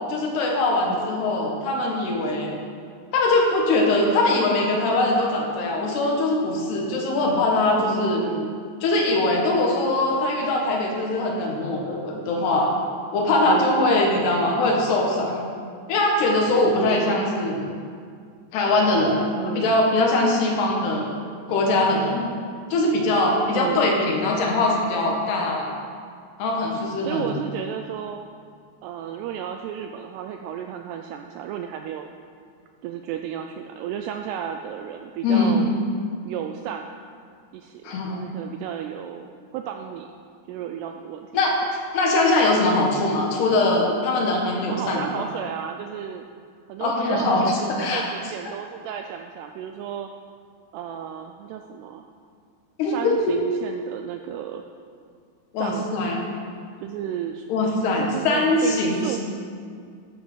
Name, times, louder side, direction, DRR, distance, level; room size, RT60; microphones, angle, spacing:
voice 1, 0.1-2.6 3.1-8.2 8.8-12.7 13.1-15.4 15.9-17.6 18.5-21.1 21.5-22.3 22.7-25.7 26.4-27.3 35.2-35.6 37.8-38.2 41.3-45.3 46.8-48.0 52.8-53.4 55.5-56.2 57.5-59.2, left 2 dB, 70° left, -1 dB, 3.6 m, -22 dB
voice 2, 7.8-8.6 13.4-14.0 16.8-17.3 19.4-19.9 23.5-24.0 27.1-28.3 28.8-32.1 32.8-35.7 36.3-36.9 37.5-40.1 40.5-41.3 44.7-46.2 46.7-50.1 50.7-52.1 52.9-54.6 55.6-55.9 56.8-59.2, right 9 dB, 85° right, 5 dB, 2.4 m, -33 dB
11.0 x 9.6 x 6.3 m, 2.2 s
omnidirectional pair, 5.2 m